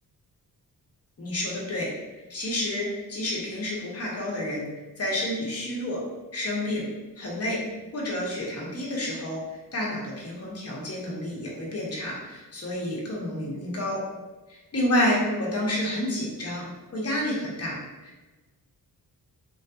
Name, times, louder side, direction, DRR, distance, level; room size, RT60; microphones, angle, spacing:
voice 1, 1.2-1.9 2.3-4.7 5.0-6.0 6.3-6.9 7.2-7.6 7.9-14.0 14.7-16.7 16.9-17.8 18.0-18.2, left 1 dB, 40° left, -4 dB, 1.0 m, -29 dB
3.1 x 2.8 x 2.3 m, 1.1 s
cardioid pair, 90°, 36 cm